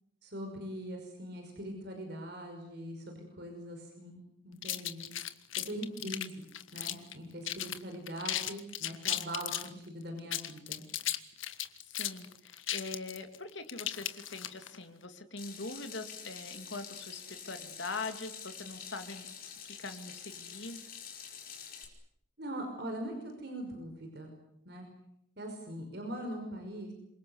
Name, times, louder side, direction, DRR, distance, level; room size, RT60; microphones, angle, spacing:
voice 1, 0.2-4.2 4.4-5.1 5.7-6.4 6.7-10.8 22.4-24.3 24.7-24.9 25.4-26.9, right 1 dB, 55° right, 3 dB, 5.6 m, -41 dB
sound 1, 4.6-7.1 7.4-7.8 8.1-9.7 10.2-14.8, left 12 dB, 80° left, 1.6 m, -36 dB
voice 2, 11.8-19.3 19.6-20.8, left 3 dB, 65° left, 7 dB, 2.9 m, -42 dB
Water tap faucet / Sink (filling or washing), 15.4-21.8, left 7 dB, 45° left, 5.5 m, -47 dB
27.0 x 23.5 x 8.1 m, 0.75 s
head